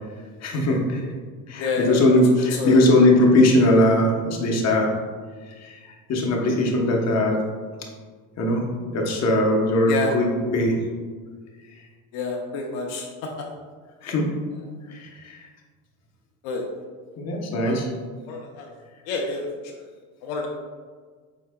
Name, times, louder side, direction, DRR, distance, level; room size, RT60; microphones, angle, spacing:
voice 1, 0.4-1.0 1.5-5.0 5.6-7.4 8.4-8.6 8.9-10.8 14.0-14.3 14.9-15.4 17.2-17.9, left 1 dB, 40° left, 0 dB, 0.9 m, -20 dB
voice 2, 1.6-2.1 2.4-2.8 9.9-10.1 12.1-13.1 16.4-16.6 17.6-17.7 18.3-18.7 19.1-19.5 20.2-20.5, left 4 dB, 75° left, 0 dB, 0.7 m, -28 dB
4.6 x 4.0 x 2.2 m, 1.5 s
supercardioid pair, 90°, 41 cm